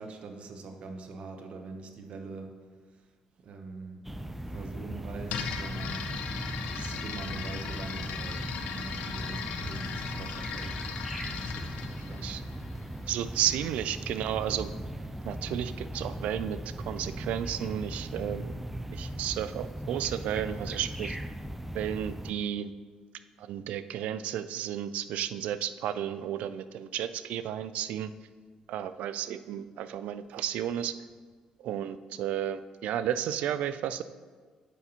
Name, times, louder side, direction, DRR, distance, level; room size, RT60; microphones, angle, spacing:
voice 1, 0.0-2.5 3.4-6.2 6.7-10.8 11.3-12.4, right 3 dB, 60° right, 5 dB, 0.8 m, -43 dB
sound 1, 4.0-22.3, right 1 dB, 10° right, 0.4 m, -38 dB
sound 2, 5.3-13.1, left 6 dB, 80° left, 0.6 m, -38 dB
voice 2, 13.1-14.7 15.2-16.6 16.9-18.7 18.9-21.2 21.7-22.7 23.4-28.1 28.7-30.9 31.6-34.0, right 10 dB, 80° right, 13 dB, 0.3 m, -32 dB
8.2 x 5.5 x 2.9 m, 1.5 s
supercardioid pair, 70°, 2 cm